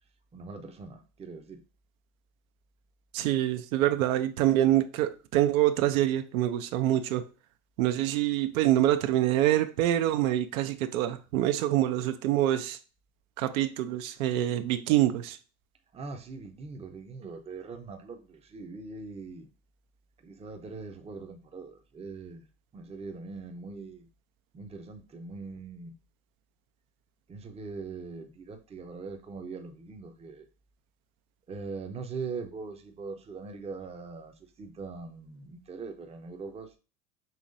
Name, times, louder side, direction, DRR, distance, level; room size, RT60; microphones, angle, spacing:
voice 1, 0.3-1.6 15.9-19.5 20.2-22.5 22.7-24.1 24.5-25.9 27.3-30.5 31.5-36.7, right 4 dB, 15° right, 0.6 m, -41 dB
voice 2, 3.1-7.2 7.8-12.8 13.4-15.4, right 13 dB, 70° right, 0.6 m, -26 dB
5.7 x 3.0 x 2.5 m
hypercardioid pair, 100°, 42 cm